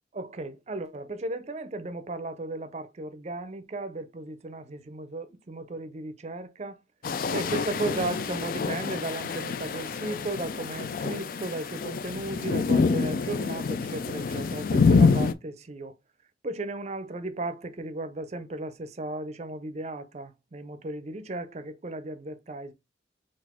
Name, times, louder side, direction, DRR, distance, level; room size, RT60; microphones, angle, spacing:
voice 1, 0.1-6.8 7.3-15.9 16.4-22.7, right 2 dB, 35° right, 0.5 m, -35 dB
sound 1, 7.0-15.3, left 4 dB, 50° left, 0.3 m, -26 dB
4.1 x 2.5 x 4.2 m
head